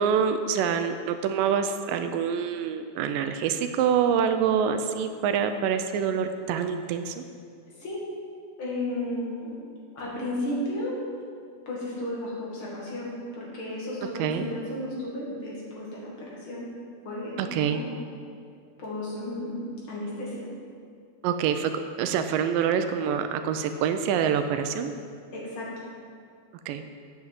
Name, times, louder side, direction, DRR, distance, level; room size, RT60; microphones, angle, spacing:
voice 1, 0.0-7.2 14.2-14.5 17.4-17.8 21.2-21.7 22.0-24.9 26.7-26.8, right 7 dB, 80° right, 8 dB, 2.1 m, -26 dB
voice 2, 8.6-9.6 9.9-11.0 11.7-16.6 17.0-17.9 18.8-20.5 25.3-25.7, left 1 dB, 40° left, -5 dB, 2.6 m, -33 dB
8.2 x 7.7 x 7.3 m, 2.3 s
omnidirectional pair, 4.2 m